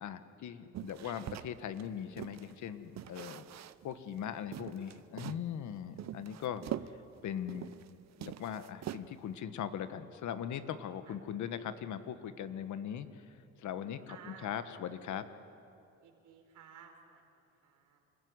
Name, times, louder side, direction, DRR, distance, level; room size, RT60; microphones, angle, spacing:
voice 1, 0.0-3.4 3.8-6.7 7.2-7.7 8.2-13.3 13.6-15.2, left 9 dB, 75° left, 11 dB, 1.4 m, -40 dB
sound 1, 0.7-2.5 3.0-3.9 4.2-4.3 4.5-5.5 6.0-7.9 8.2-9.3, right 12 dB, 60° right, 0.8 m, -43 dB
voice 2, 14.1-14.6 16.0-17.2 17.6-18.0, right 7 dB, 80° right, 4 dB, 4.0 m, -54 dB
27.0 x 15.5 x 9.7 m, 2.7 s
cardioid pair, 90°, 30 cm